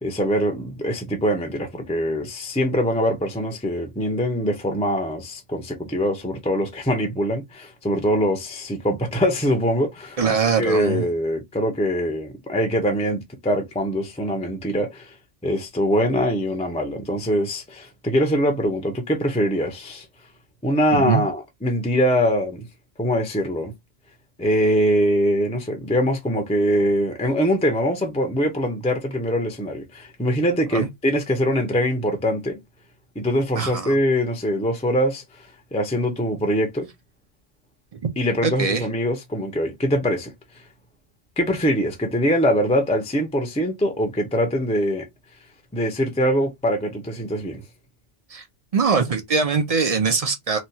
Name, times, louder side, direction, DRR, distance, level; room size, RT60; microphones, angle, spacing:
voice 1, 0.0-10.2 10.6-15.1 15.4-20.1 20.6-22.7 23.0-23.7 24.4-32.6 33.2-36.9 38.2-40.3 41.4-45.1 45.7-47.6, equal, 10° left, 0.4 m, -23 dB
voice 2, 10.2-11.1 20.9-21.2 30.7-30.9 33.6-34.0 38.4-38.9 48.3-48.4 48.7-50.6, right 5 dB, 45° right, 0.5 m, -22 dB
3.0 x 2.3 x 2.7 m
omnidirectional pair, 1.3 m